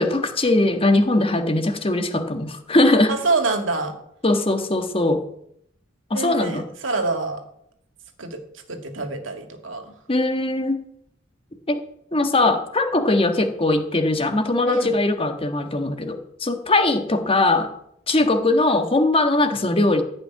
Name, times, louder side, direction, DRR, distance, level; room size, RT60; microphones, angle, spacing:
voice 1, 0.0-3.2 4.2-5.2 6.1-6.6 10.1-10.8 11.7-11.8 12.1-17.7 18.1-20.0, left 2 dB, 30° left, 7 dB, 1.5 m, -20 dB
voice 2, 2.8-3.9 6.1-7.4 8.2-8.4 8.7-9.9 14.7-14.9, right 3 dB, 90° right, 5 dB, 2.2 m, -26 dB
15.0 x 5.9 x 9.5 m, 0.73 s
head